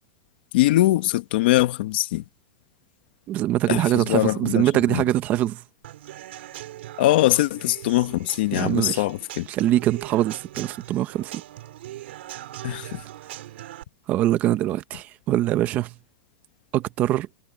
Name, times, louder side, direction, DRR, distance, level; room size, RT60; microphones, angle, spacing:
voice 1, 0.5-2.2 3.7-5.0 7.0-9.5 12.6-13.0, left 16 dB, 55° left, 1.1 m, -22 dB
voice 2, 3.3-5.6 8.5-9.0 9.5-11.3 14.1-15.9 16.7-17.3, right 13 dB, 25° right, 0.8 m, -23 dB
Human voice / Acoustic guitar / Drum, 5.8-13.8, right 14 dB, 70° right, 5.1 m, -40 dB
supercardioid pair, 175°, 6 cm